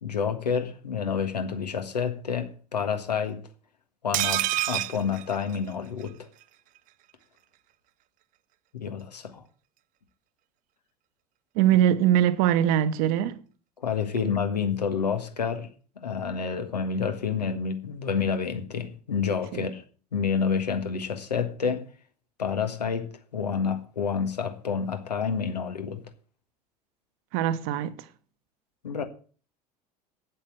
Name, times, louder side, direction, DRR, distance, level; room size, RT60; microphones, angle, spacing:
voice 1, 0.0-3.4 4.0-6.3 8.7-9.4 13.8-15.7 15.9-19.8 20.1-21.9 22.4-26.0 28.8-29.0, left 6 dB, 80° left, 1.6 m, -29 dB
sound 1, 4.1-6.1 6.4-6.5 6.8-6.9, right 16 dB, 40° right, 0.5 m, -28 dB
voice 2, 11.5-13.4 19.5-19.7 27.3-28.0, right 11 dB, 60° right, 1.1 m, -22 dB
8.8 x 8.0 x 8.6 m
figure-of-eight pair, 70°, 21 cm